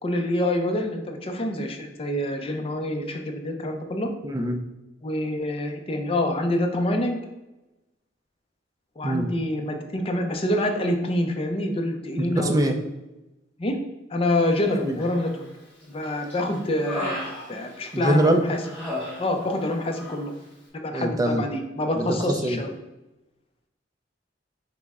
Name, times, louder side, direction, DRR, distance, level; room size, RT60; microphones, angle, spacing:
voice 1, 0.0-4.1 5.0-7.2 9.0-12.6 13.6-13.8 14.1-15.3 15.8-18.6 19.2-20.3 20.7-22.7, left 1 dB, 30° left, 4 dB, 0.5 m, -26 dB
voice 2, 4.2-4.6 9.0-9.3 12.2-12.8 14.8-15.0 17.9-18.5 20.9-21.4 22.0-22.6, right 1 dB, 20° right, 6 dB, 0.4 m, -23 dB
Human voice, 15.0-15.6 16.0-18.2 18.6-19.7 19.9-20.2, left 1 dB, 10° left, 1.4 m, -35 dB
5.8 x 2.1 x 3.6 m, 1.0 s
head